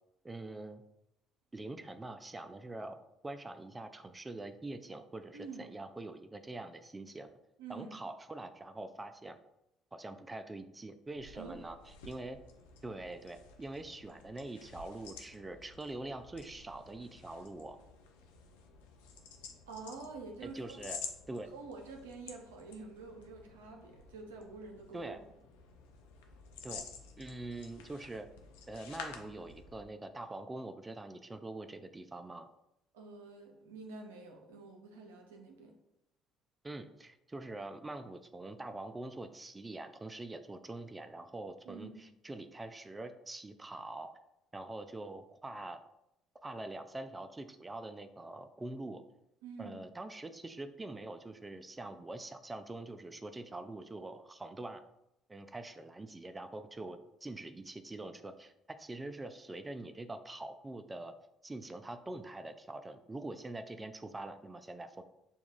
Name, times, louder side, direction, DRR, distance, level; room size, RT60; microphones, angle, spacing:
voice 1, 0.2-0.8 1.5-3.0 3.2-7.3 7.7-9.4 9.9-12.4 12.8-17.8 20.4-21.0 21.3-21.5 24.9-25.2 26.6-26.9 27.2-28.3 28.7-32.5 36.6-44.1 44.5-45.8 46.4-49.0 49.6-54.8 55.3-61.1 61.4-65.0, right 2 dB, 20° right, 8 dB, 0.4 m, -44 dB
voice 2, 5.3-5.7 7.6-8.0 11.3-11.6 19.7-20.8 21.5-25.2 32.9-35.7 41.7-42.0 49.4-49.8, right 4 dB, 85° right, 2 dB, 0.6 m, -48 dB
sound 1, 11.0-30.0, left 5 dB, 80° left, 0.5 m, -51 dB
6.8 x 2.3 x 2.4 m, 0.84 s
hypercardioid pair, 55°, 0 cm